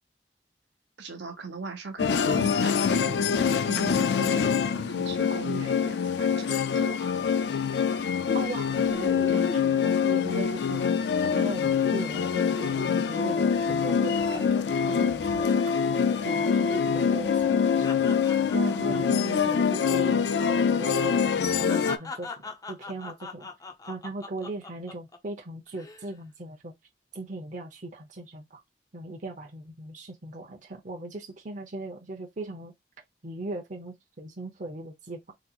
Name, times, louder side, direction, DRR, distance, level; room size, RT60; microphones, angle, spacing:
voice 1, 1.0-7.2, right 4 dB, 85° right, 0.9 m, -39 dB
sound 1, 2.0-22.0, left 6 dB, 70° left, 0.4 m, -25 dB
voice 2, 7.9-15.8 16.2-23.5 23.9-26.7 27.1-28.6 28.9-32.7 33.2-35.3, right 2 dB, 45° right, 0.8 m, -39 dB
sound 2, 8.3-10.8 11.1-11.3 11.6-15.1 15.4-15.8 16.1-20.2 20.4-20.6 21.1-25.2 25.7-26.1, left 3 dB, 20° left, 0.5 m, -41 dB
4.0 x 2.9 x 2.4 m
head